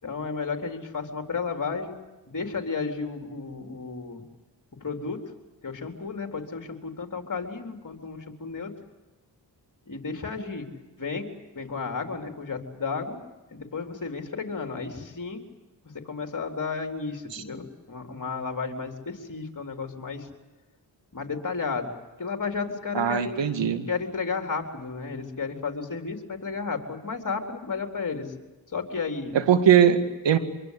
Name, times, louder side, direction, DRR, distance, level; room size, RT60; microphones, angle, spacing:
voice 1, 0.0-2.0 2.3-4.2 4.8-5.2 5.6-8.7 9.9-10.7 11.0-11.3 11.5-13.2 13.5-15.4 15.9-20.3 21.1-21.9 22.2-23.4 23.9-28.3 28.7-29.4, left 4 dB, 45° left, 4 dB, 4.0 m, -33 dB
voice 2, 22.9-23.9 29.3-30.0 30.2-30.4, right 8 dB, 80° right, 9 dB, 2.1 m, -20 dB
25.0 x 23.5 x 8.5 m, 1.1 s
cardioid pair, 55°, 43 cm